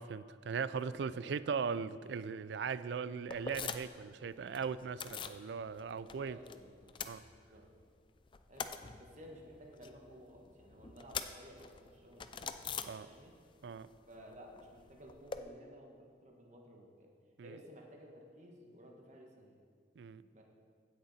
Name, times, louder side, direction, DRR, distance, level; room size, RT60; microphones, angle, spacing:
voice 1, 0.0-6.4 7.0-7.2 12.9-13.1 13.6-13.9 17.4-17.6 20.0-20.2, right 6 dB, 65° right, 16 dB, 0.3 m, -39 dB
voice 2, 0.7-1.3 6.0-6.9 7.3-7.7 8.5-8.7 9.0-12.5 13.0-13.3 14.1-17.1 17.4-19.6 20.3-20.4, equal, 40° right, 0 dB, 1.4 m, -55 dB
sound 1, 3.3-4.1 4.3-5.4 5.8-6.6 6.8-7.8 8.1-13.5 13.8-15.4, left 6 dB, 25° left, 0.4 m, -44 dB
15.5 x 6.7 x 4.2 m, 2.1 s
head